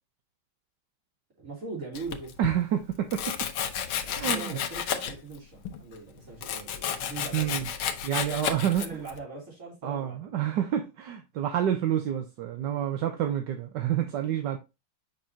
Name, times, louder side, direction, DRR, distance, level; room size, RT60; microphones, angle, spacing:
voice 1, 1.4-2.3 4.0-10.3, right 4 dB, 40° right, 3.3 m, -41 dB
Domestic sounds home sounds, 1.9-2.6 3.1-5.4 5.7-9.2, left 8 dB, 75° left, 1.7 m, -32 dB
voice 2, 2.4-3.4 4.2-4.6 7.3-7.7 8.0-8.8 9.8-14.6, right 10 dB, 65° right, 1.3 m, -28 dB
7.1 x 5.4 x 2.7 m
omnidirectional pair, 2.3 m